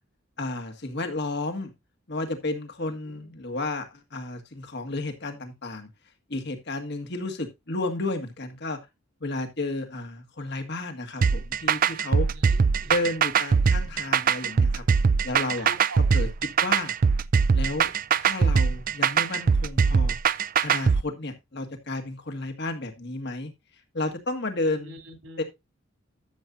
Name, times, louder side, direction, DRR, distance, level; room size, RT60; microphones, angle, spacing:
voice 1, 0.4-1.7 2.1-5.9 6.3-8.8 9.2-12.3 12.9-14.8 15.2-15.7 16.1-16.3 16.6-16.9 17.5-17.9 18.2-20.2 20.6-23.5 23.9-25.0 25.4-25.5, left 2 dB, 55° left, 5 dB, 1.8 m, -32 dB
sound 1, 11.2-21.0, right 6 dB, 45° right, 0.4 m, -21 dB
voice 2, 12.3-12.9 15.6-16.3 24.6-25.4, right 2 dB, 85° right, 5 dB, 3.5 m, -43 dB
12.5 x 7.3 x 2.7 m, 0.22 s
head